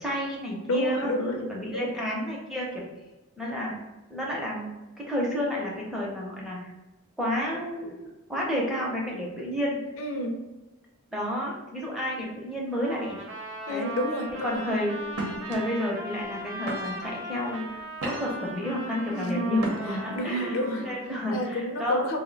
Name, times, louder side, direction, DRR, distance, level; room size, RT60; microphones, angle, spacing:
voice 1, 0.0-2.8 3.4-3.7 4.1-4.7 5.0-6.7 7.2-8.0 8.3-9.8 11.1-13.2 13.7-13.9 14.4-15.0 15.5-22.1, equal, ahead, -4 dB, 0.5 m, -30 dB
voice 2, 0.7-1.2 1.7-1.9 10.0-10.4 13.7-14.6 19.1-19.6 20.1-20.9 21.3-22.2, left 1 dB, 65° left, 3 dB, 0.4 m, -29 dB
Trumpet, 12.7-21.0, right 1 dB, 55° right, 0.5 m, -39 dB
sound 1, 14.3-14.6 15.1-15.5 16.2-16.3 16.7-17.2 17.7-18.5 19.6-20.1, right 1 dB, 90° right, 0.8 m, -35 dB
2.6 x 2.0 x 3.8 m, 1.1 s
head